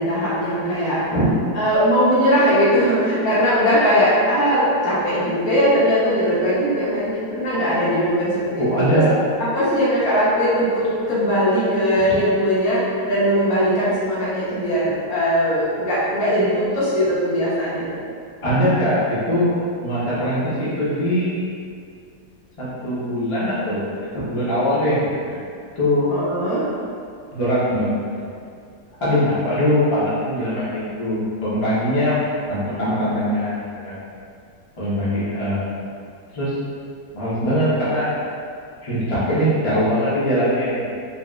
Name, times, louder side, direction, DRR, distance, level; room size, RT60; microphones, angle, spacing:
voice 1, 0.0-1.0 1.5-9.0 9.4-18.0 26.1-26.6, equal, 60° left, -9 dB, 1.1 m, -20 dB
voice 2, 8.6-9.1 18.4-19.5 19.8-21.4 22.6-25.4 25.8-26.1 27.3-27.9 28.2-28.3 29.0-32.2 32.5-34.0 34.8-35.7 36.3-36.5 37.1-38.1 38.8-40.8, equal, 35° left, -11 dB, 0.5 m, -21 dB
3.8 x 2.5 x 2.3 m, 2.3 s
omnidirectional pair, 1.9 m